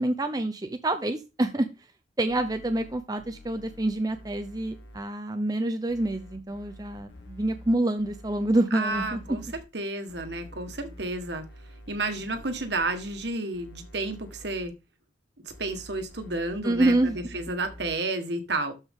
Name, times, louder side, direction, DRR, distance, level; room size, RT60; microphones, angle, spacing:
voice 1, 0.0-1.7 2.2-9.4 16.6-17.2, right 1 dB, 20° right, 0.6 m, -27 dB
sound 1, 2.3-5.0 5.9-8.5 8.9-9.6 10.1-13.3 13.5-14.6 15.5-17.9, equal, 70° left, 2.2 m, -47 dB
voice 2, 8.7-9.4 9.7-11.4 11.9-14.7 15.4-18.7, right 2 dB, 60° right, 1.5 m, -31 dB
12.5 x 5.2 x 3.7 m
head